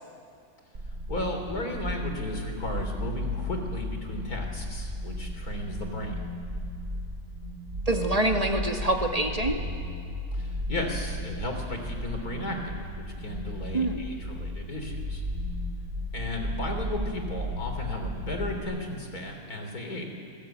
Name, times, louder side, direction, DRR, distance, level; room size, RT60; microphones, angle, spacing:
sound 1, 0.7-18.6, left 1 dB, 60° right, 3.8 m, -35 dB
voice 1, 1.1-6.3 10.3-15.2 16.1-20.1, left 1 dB, 90° left, 4 dB, 4.2 m, -34 dB
voice 2, 7.9-9.6 13.7-14.1, right 1 dB, 25° right, 2 dB, 2.0 m, -26 dB
27.0 x 20.5 x 9.2 m, 2.5 s
omnidirectional pair, 1.5 m